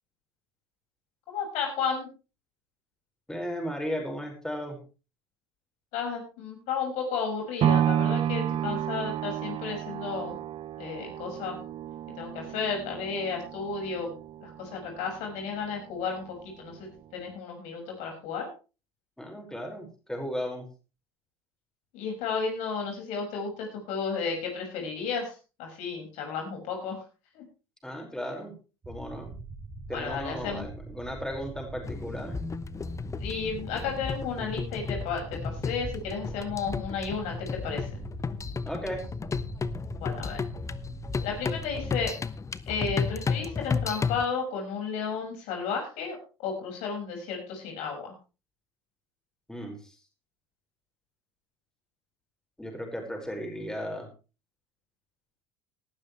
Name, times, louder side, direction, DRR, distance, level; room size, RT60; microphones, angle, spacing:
voice 1, 1.3-2.1 5.9-10.4 10.8-11.6 12.2-14.1 14.4-18.5 21.9-25.3 25.6-27.0 27.3-27.4 29.9-30.6 33.2-38.0 40.0-40.4 41.2-42.1 42.7-48.1, left 5 dB, 60° left, 2 dB, 6.1 m, -33 dB
voice 2, 3.3-4.8 19.2-20.7 27.8-28.5 28.9-29.3 29.9-32.5 38.6-39.1 49.5-50.0 52.6-54.1, equal, 5° left, 2 dB, 5.4 m, -35 dB
sound 1, 7.6-15.7 16.2-16.3, right 10 dB, 40° right, 0.9 m, -31 dB
sound 2, 28.8-42.0, right 3 dB, 25° right, 4.5 m, -43 dB
sound 3, 31.8-44.2, left 5 dB, 25° left, 0.8 m, -33 dB
18.5 x 12.0 x 3.3 m, 0.33 s
hypercardioid pair, 65°, 13 cm